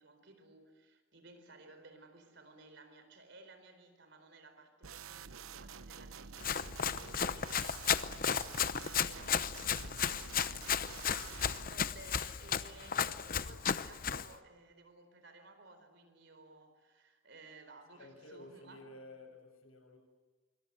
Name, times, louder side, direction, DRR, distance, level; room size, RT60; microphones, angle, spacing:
voice 1, 0.0-10.7 11.0-19.0, right 2 dB, 55° right, 8 dB, 4.4 m, -57 dB
sound 1, 4.8-11.7, right 6 dB, 85° right, 0.9 m, -49 dB
voice 2, 6.3-7.5 12.6-13.4 17.9-20.0, left 1 dB, 85° left, 4 dB, 7.0 m, -55 dB
Run, 6.4-14.3, left 7 dB, 40° left, 0.8 m, -34 dB
27.0 x 24.5 x 8.0 m, 1.3 s
head